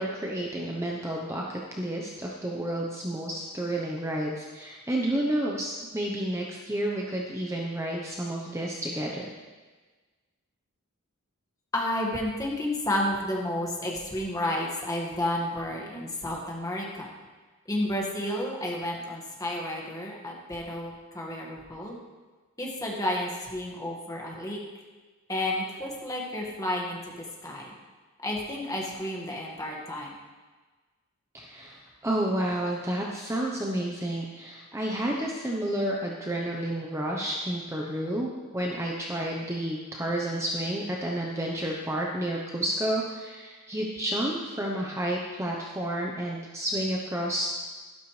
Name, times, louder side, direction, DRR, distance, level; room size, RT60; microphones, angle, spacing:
voice 1, 0.0-9.3 31.3-47.5, right 1 dB, 15° right, -2 dB, 0.9 m, -30 dB
voice 2, 11.7-17.1 17.7-22.0 22.6-24.6 25.3-27.0 27.4-27.7 28.2-30.1, left 1 dB, 15° left, -2 dB, 1.8 m, -31 dB
12.5 x 12.0 x 3.3 m, 1.3 s
head